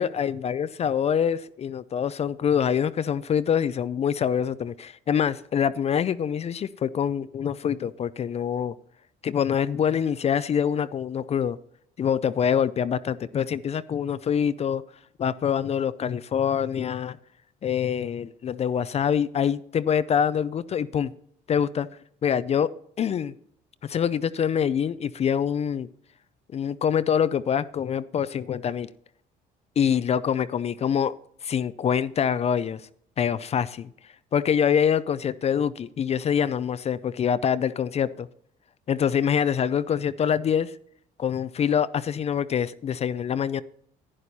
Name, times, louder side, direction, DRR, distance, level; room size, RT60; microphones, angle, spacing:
voice 1, 0.0-8.7 9.2-11.6 12.0-14.8 15.2-17.2 17.6-21.1 21.5-21.9 22.2-22.7 23.0-23.3 23.8-25.9 26.5-28.9 29.8-31.1 31.4-32.8 33.2-33.9 34.3-38.3 38.9-40.7 41.2-43.6, left 8 dB, 40° left, 0.5 m, -25 dB
11.0 x 10.0 x 4.2 m
cardioid pair, 110°, 17 cm